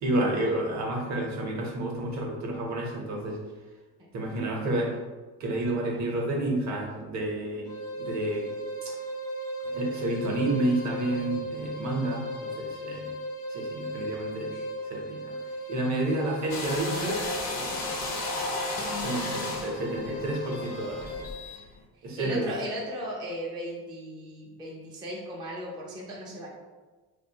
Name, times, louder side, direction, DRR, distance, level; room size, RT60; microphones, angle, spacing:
voice 1, 0.0-3.4 4.1-4.9 5.4-7.7 8.0-8.5 8.8-9.0 9.6-13.1 13.5-14.5 14.8-15.3 15.7-17.2 19.0-21.3 22.0-22.5, right 1 dB, 40° right, 0 dB, 0.7 m, -30 dB
sound 1, 7.7-21.3, equal, 80° left, 0.9 m, -37 dB
sound 2, 16.5-21.7, left 2 dB, 40° left, 0.6 m, -34 dB
voice 2, 21.9-26.5, equal, 10° right, -4 dB, 0.4 m, -37 dB
2.5 x 2.2 x 2.7 m, 1.3 s
supercardioid pair, 85°, 42 cm